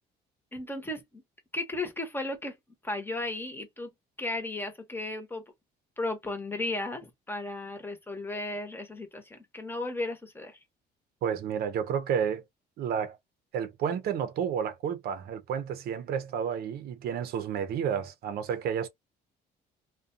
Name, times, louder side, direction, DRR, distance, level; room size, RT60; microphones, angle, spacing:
voice 1, 0.5-1.2 1.5-2.6 2.8-3.9 4.2-5.5 6.0-10.6, left 2 dB, 15° left, 0.9 m, -35 dB
voice 2, 11.2-12.4 12.8-13.2 13.5-18.9, right 8 dB, 65° right, 0.6 m, -31 dB
2.4 x 2.2 x 2.5 m
cardioid pair, 110°, 17 cm